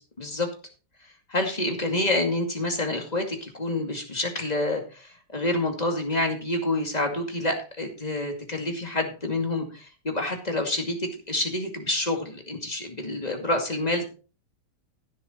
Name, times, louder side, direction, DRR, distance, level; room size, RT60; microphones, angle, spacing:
voice 1, 0.2-0.5 1.3-14.0, left 2 dB, 20° left, 3 dB, 2.4 m, -28 dB
15.0 x 7.1 x 4.4 m, 0.36 s
omnidirectional pair, 1.9 m